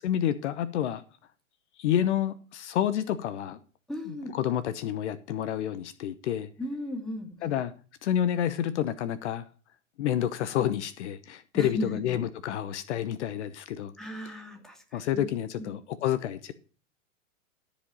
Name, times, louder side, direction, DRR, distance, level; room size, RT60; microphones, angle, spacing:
voice 1, 0.0-1.0 1.8-3.6 4.0-6.5 7.4-7.7 8.0-9.5 10.0-13.9 14.2-14.3 14.9-16.5, left 10 dB, 60° left, 0.9 m, -29 dB
voice 2, 3.9-4.3 6.6-7.5 11.5-12.0 14.0-15.3 15.6-15.7, left 1 dB, ahead, 2.3 m, -36 dB
13.5 x 5.1 x 5.5 m
hypercardioid pair, 115°, 39 cm